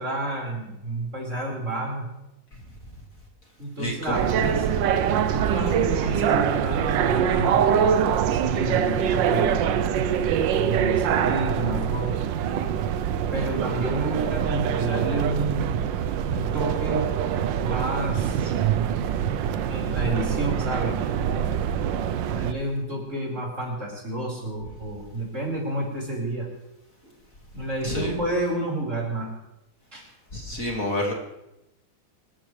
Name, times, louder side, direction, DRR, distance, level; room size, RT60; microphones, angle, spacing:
voice 1, 0.0-2.1 3.6-4.7 5.3-8.0 8.3-9.6 10.6-12.2 13.3-15.8 16.2-17.1 17.6-18.8 19.7-21.6 22.3-26.5 27.5-29.3 29.9-30.1, right 2 dB, 40° right, -2 dB, 5.2 m, -30 dB
voice 2, 3.8-4.2 27.8-28.1 30.3-31.1, left 1 dB, 45° left, 0 dB, 2.4 m, -28 dB
sound 1, 4.1-22.5, right 8 dB, 75° right, 1.4 m, -24 dB
26.5 x 14.0 x 3.3 m, 0.91 s
omnidirectional pair, 2.0 m